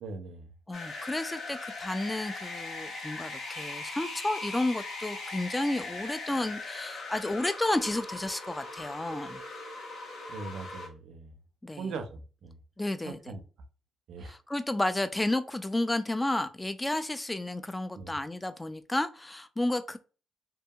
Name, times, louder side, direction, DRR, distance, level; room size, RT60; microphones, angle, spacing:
voice 1, 0.0-0.5 10.3-11.3 11.8-12.6 13.0-13.4 14.1-14.3 17.9-18.2, right 4 dB, 75° right, 0.5 m, -40 dB
sound 1, 0.7-10.9, left 3 dB, 70° left, 0.9 m, -40 dB
voice 2, 0.7-9.4 11.6-11.8 12.8-13.2 14.3-20.0, left 1 dB, 15° left, 0.3 m, -31 dB
2.7 x 2.7 x 2.3 m
cardioid pair, 90°, 0 cm